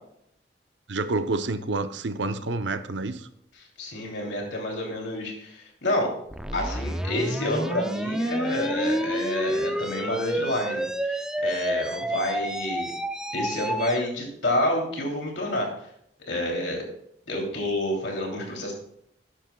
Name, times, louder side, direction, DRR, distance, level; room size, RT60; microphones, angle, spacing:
voice 1, 0.9-3.2, right 3 dB, 80° right, 10 dB, 0.8 m, -28 dB
voice 2, 3.5-6.1 6.5-12.9 13.3-15.7 16.3-16.8 17.3-18.7, left 1 dB, 75° left, 0 dB, 3.1 m, -29 dB
sound 1, 6.3-14.1, right 1 dB, 5° right, 0.4 m, -29 dB
12.0 x 9.9 x 2.3 m, 0.70 s
head